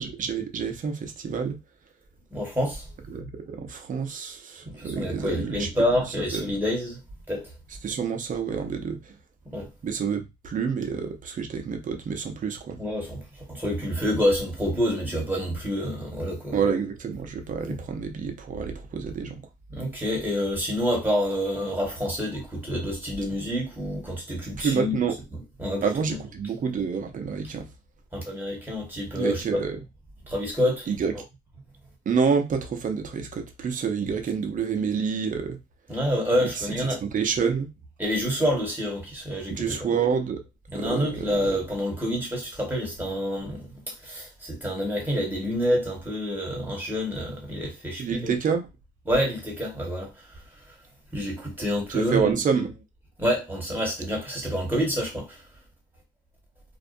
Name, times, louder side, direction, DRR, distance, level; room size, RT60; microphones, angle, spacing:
voice 1, 0.0-1.6 3.1-5.7 6.3-6.4 7.8-9.1 9.8-12.8 16.5-19.4 24.6-25.2 25.8-27.7 29.2-29.8 30.9-31.1 32.1-35.6 36.5-37.7 39.5-40.4 40.7-41.6 48.0-48.6 51.9-52.7, right 6 dB, 40° right, 0.6 m, -28 dB
voice 2, 2.3-2.9 4.6-7.0 7.3-7.5 9.5-9.7 12.8-13.2 13.5-16.6 17.7-17.8 19.7-25.0 25.3-25.8 28.1-29.6 30.3-30.9 35.9-37.0 38.0-39.8 40.7-48.3 49.1-50.1 51.1-52.3 53.2-55.4, equal, 10° right, 1.3 m, -27 dB
2.4 x 2.1 x 2.5 m
cardioid pair, 90°, 20 cm